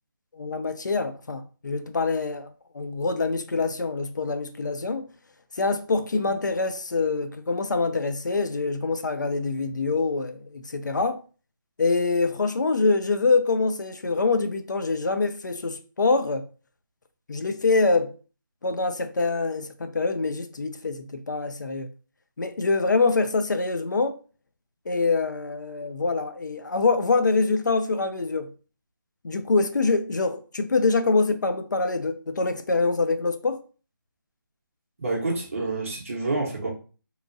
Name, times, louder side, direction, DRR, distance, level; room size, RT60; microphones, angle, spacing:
voice 1, 0.3-2.5 2.7-5.1 5.6-11.2 11.8-16.5 17.3-18.1 18.6-21.9 22.4-24.2 24.9-28.5 29.2-33.6, left 3 dB, 55° left, 0.4 m, -25 dB
voice 2, 35.0-36.7, right 2 dB, 40° right, 0.8 m, -28 dB
2.9 x 2.3 x 2.5 m
figure-of-eight pair, 175°, 12 cm